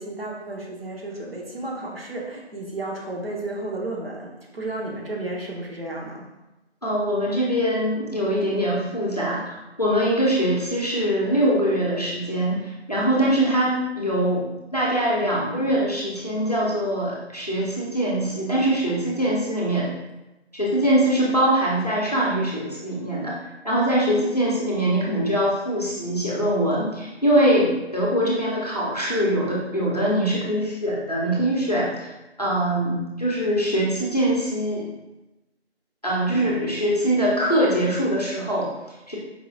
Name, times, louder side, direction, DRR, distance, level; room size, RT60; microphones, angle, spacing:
voice 1, 0.0-6.2, right 2 dB, 55° right, -2 dB, 1.0 m, -32 dB
voice 2, 6.8-19.9 20.5-23.3 23.6-32.1 32.4-34.9 36.0-39.2, right 1 dB, 35° left, -5 dB, 0.6 m, -23 dB
4.7 x 2.7 x 2.4 m, 1.0 s
figure-of-eight pair, 170°, 34 cm